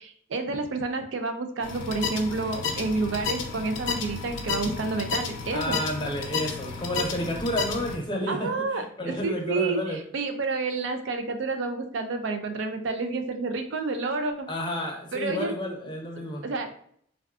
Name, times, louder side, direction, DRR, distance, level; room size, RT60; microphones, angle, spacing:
voice 1, 0.0-5.8 8.3-14.5 15.1-15.5 16.4-16.7, right 3 dB, 80° right, 6 dB, 0.4 m, -29 dB
sound 1, 1.6-8.0, left 5 dB, 75° left, 0.5 m, -32 dB
voice 2, 5.5-10.0 14.5-16.5, equal, 25° left, 1 dB, 0.6 m, -31 dB
3.5 x 2.3 x 2.3 m, 0.62 s
head